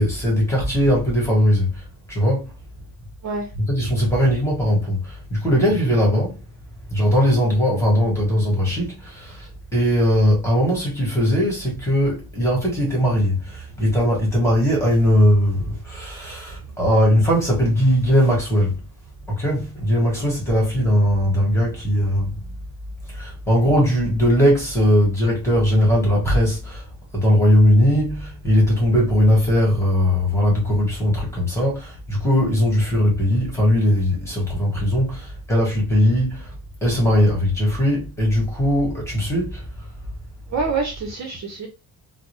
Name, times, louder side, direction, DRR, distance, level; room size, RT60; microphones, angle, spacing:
voice 1, 0.0-1.8 2.1-2.5 3.7-6.4 6.9-18.8 19.3-22.4 23.1-26.9 27.1-36.5 36.8-39.7, equal, 5° left, 1.6 m, -19 dB
voice 2, 40.5-41.7, right 4 dB, 45° right, 0.7 m, -26 dB
3.7 x 2.0 x 3.1 m
wide cardioid pair, 165°, 38 cm